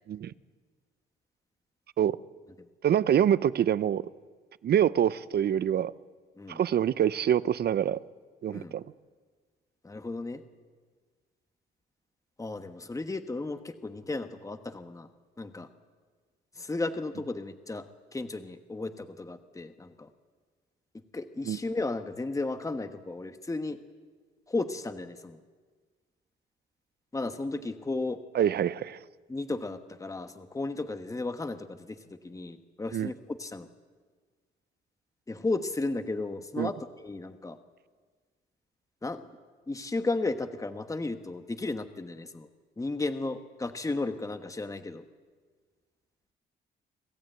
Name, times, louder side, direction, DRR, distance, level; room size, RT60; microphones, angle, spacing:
voice 1, 2.8-4.0 4.6-5.9 6.5-8.0 8.4-8.8 21.5-21.6 28.3-29.0 32.9-33.1 36.6-36.7, right 9 dB, 55° right, 0.7 m, -25 dB
voice 2, 9.8-10.4 12.4-15.1 15.4-15.7 16.6-17.9 18.1-20.1 21.1-23.8 24.5-25.4 27.1-28.2 29.3-33.7 35.3-37.6 39.0-39.3 39.7-42.5 42.8-45.0, left 2 dB, 15° left, 1.3 m, -34 dB
26.0 x 14.0 x 9.0 m
cardioid pair, 90°, 20 cm